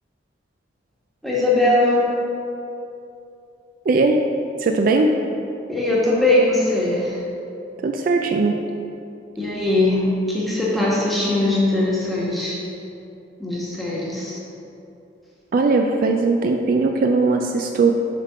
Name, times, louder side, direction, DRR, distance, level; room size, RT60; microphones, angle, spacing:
voice 1, 1.2-2.1 5.7-7.2 9.4-12.6 13.4-14.4, left 2 dB, ahead, -7 dB, 1.3 m, -20 dB
voice 2, 3.9-4.2 4.6-5.1 7.8-8.6 15.5-17.9, right 3 dB, 50° right, 4 dB, 0.3 m, -19 dB
7.5 x 3.5 x 5.4 m, 2.7 s
head